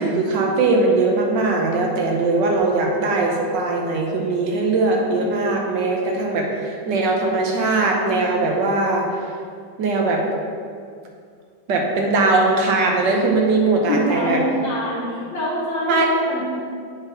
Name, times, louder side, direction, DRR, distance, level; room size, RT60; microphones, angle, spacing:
voice 1, 0.0-9.1 9.8-10.2 11.7-14.4 15.9-16.1, right 3 dB, 75° right, 0 dB, 1.6 m, -20 dB
voice 2, 13.9-16.5, left 1 dB, 80° left, -6 dB, 1.8 m, -25 dB
7.6 x 4.2 x 5.4 m, 2.3 s
omnidirectional pair, 2.0 m